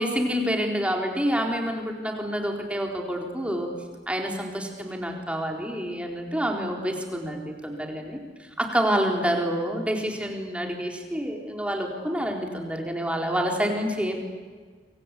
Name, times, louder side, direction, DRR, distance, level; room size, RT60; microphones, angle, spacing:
voice 1, 0.0-3.7 4.1-8.2 8.6-14.2, equal, 5° right, 1 dB, 4.0 m, -27 dB
27.5 x 25.5 x 8.5 m, 1.5 s
head